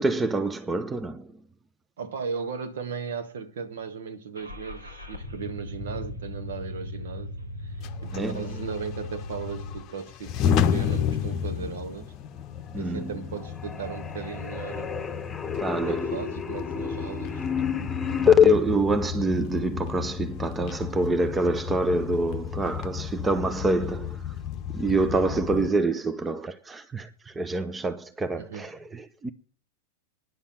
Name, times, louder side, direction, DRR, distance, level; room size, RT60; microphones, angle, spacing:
voice 1, 0.0-1.3 8.1-8.4 12.7-13.1 15.6-16.2 16.8-17.0 18.2-24.2 24.7-29.3, right 3 dB, 15° right, 0.7 m, -27 dB
voice 2, 2.0-7.3 7.6-12.1 12.7-15.0 15.9-17.4 28.4-28.7, right 6 dB, 60° right, 1.5 m, -36 dB
Car / Engine starting, 4.3-9.8, left 2 dB, 85° right, 2.6 m, -37 dB
sound 1, 7.8-25.7, left 8 dB, 35° left, 0.8 m, -32 dB
sound 2, 12.6-13.1 13.4-18.5, left 8 dB, 10° left, 1.2 m, -25 dB
10.5 x 7.1 x 9.3 m
figure-of-eight pair, 90°, 0 cm